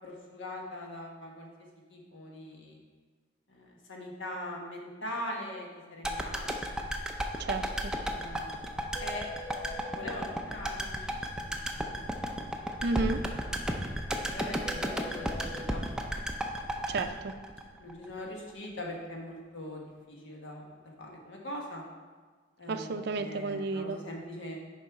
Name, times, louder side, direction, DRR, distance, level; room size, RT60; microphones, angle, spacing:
voice 1, 0.0-1.5 1.9-2.8 3.5-6.5 8.0-9.2 9.9-12.0 12.3-12.9 13.5-13.6 14.3-15.8 17.8-21.8 22.6-24.6, left 1 dB, 70° left, -1 dB, 1.5 m, -42 dB
sound 1, 6.0-18.2 18.5-18.6, equal, 5° right, 0.5 m, -34 dB
voice 2, 7.4-7.9 12.8-13.3 16.9-17.3 22.7-24.0, right 3 dB, 55° right, 9 dB, 0.4 m, -32 dB
sound 2, 7.7-7.8 8.1-8.2 8.5-8.6 8.9-9.9 14.6-15.6, left 2 dB, 15° left, 0.9 m, -43 dB
7.0 x 5.3 x 4.8 m, 1.4 s
head